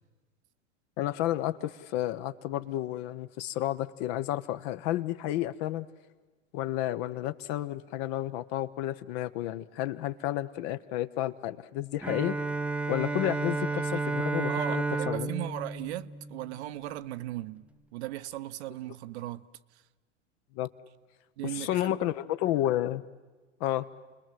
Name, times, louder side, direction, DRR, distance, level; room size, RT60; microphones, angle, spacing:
voice 1, 1.0-5.9 6.5-12.4 12.9-15.3 20.5-20.7 21.4-23.0 23.6-23.9, left 14 dB, 50° left, 1.1 m, -31 dB
Bowed string instrument, 12.0-16.9, right 3 dB, 5° right, 0.7 m, -32 dB
voice 2, 14.5-19.5 21.4-22.1, right 15 dB, 65° right, 0.9 m, -37 dB
29.5 x 21.0 x 7.7 m
hypercardioid pair, 100°, 36 cm